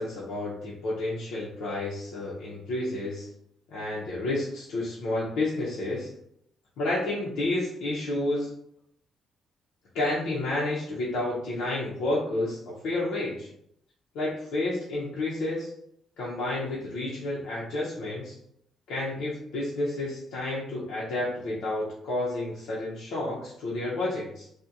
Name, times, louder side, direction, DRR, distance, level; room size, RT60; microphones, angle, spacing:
voice 1, 0.0-3.3 3.7-6.1 6.8-8.5 9.9-13.5 14.1-15.7 16.2-18.4 18.9-24.5, left 2 dB, 85° left, -6 dB, 0.5 m, -30 dB
2.7 x 2.1 x 2.4 m, 0.73 s
cardioid pair, 90°, 0 cm